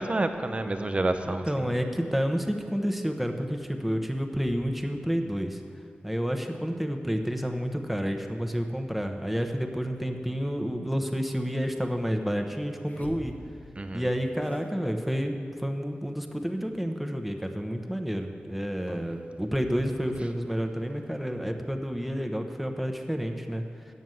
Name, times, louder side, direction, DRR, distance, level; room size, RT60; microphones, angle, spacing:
voice 1, 0.0-1.7 13.8-14.1 18.9-19.0, right 2 dB, 35° right, 8 dB, 0.7 m, -29 dB
voice 2, 1.2-5.6 6.0-13.3 13.9-15.3 15.6-23.6, equal, 5° right, 5 dB, 0.9 m, -30 dB
sound 1, 11.3-11.4 12.8-14.1 14.4-15.3 15.6-15.7 15.9-17.2 18.5-19.3, left 1 dB, 45° left, 0.9 m, -48 dB
9.3 x 7.0 x 7.7 m, 2.3 s
wide cardioid pair, 85°, 4 cm